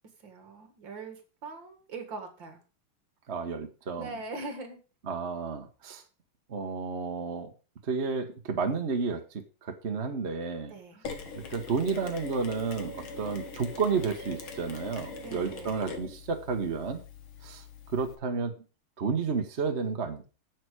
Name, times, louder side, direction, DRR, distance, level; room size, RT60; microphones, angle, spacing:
voice 1, 0.2-2.6 4.0-4.8 10.7-11.0 15.2-15.8, right 3 dB, 60° right, 6 dB, 2.5 m, -41 dB
voice 2, 3.3-4.1 5.1-6.0 6.5-7.5 7.9-9.2 9.8-10.7 11.5-17.0 17.4-17.6 17.9-18.5 19.0-20.3, right 5 dB, 35° right, 5 dB, 1.3 m, -31 dB
Mechanisms, 11.0-18.2, left 4 dB, 75° left, 2.3 m, -43 dB
9.1 x 7.8 x 4.8 m, 0.34 s
omnidirectional pair, 2.3 m